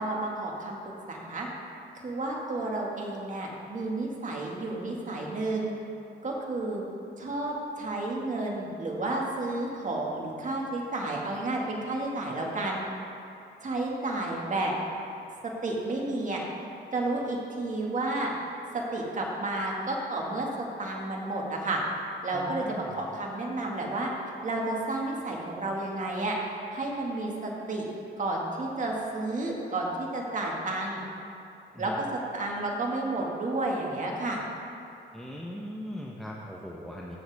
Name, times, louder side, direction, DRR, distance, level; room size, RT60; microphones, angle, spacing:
voice 1, 0.0-1.5 2.0-5.7 6.2-6.8 7.2-12.8 13.6-14.7 15.6-16.4 16.9-18.3 18.9-21.8 22.2-24.1 24.4-26.4 26.7-27.8 28.2-31.0 31.8-32.1 32.3-34.4, right 2 dB, 40° right, -2 dB, 2.1 m, -31 dB
voice 2, 22.3-23.0 31.7-32.0 35.1-37.2, equal, ahead, -3 dB, 1.0 m, -40 dB
14.5 x 7.3 x 3.6 m, 2.7 s
cardioid pair, 90°, 20 cm